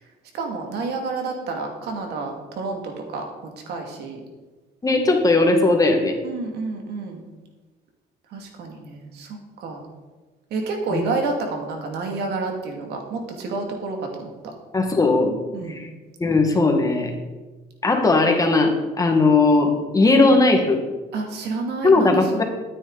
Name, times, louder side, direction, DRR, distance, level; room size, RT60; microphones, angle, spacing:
voice 1, 0.3-3.2 3.7-4.2 6.2-7.2 8.3-9.8 10.5-14.3 15.5-15.8 21.1-22.4, right 3 dB, 75° right, 2 dB, 2.4 m, -29 dB
voice 2, 4.8-6.2 10.9-11.0 14.7-15.4 15.7-15.9 16.2-17.1 17.8-20.8 21.8-22.4, left 3 dB, 20° left, 3 dB, 1.7 m, -18 dB
13.0 x 9.4 x 4.1 m, 1.2 s
cardioid pair, 110°, 17 cm